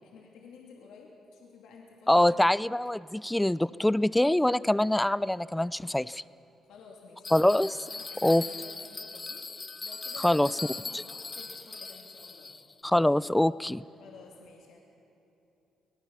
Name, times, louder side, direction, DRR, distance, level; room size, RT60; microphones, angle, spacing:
voice 1, 0.0-2.6 6.7-12.6 14.0-14.8, left 4 dB, 85° left, -1 dB, 2.8 m, -52 dB
voice 2, 2.1-6.2 7.3-7.7 8.2-8.4 10.2-10.5 10.9-11.0 12.8-13.8, left 1 dB, 5° left, 19 dB, 0.4 m, -24 dB
Bell, 7.2-12.8, left 3 dB, 30° left, 0.9 m, -40 dB
24.5 x 18.5 x 7.2 m, 2.9 s
cardioid pair, 90°, 0 cm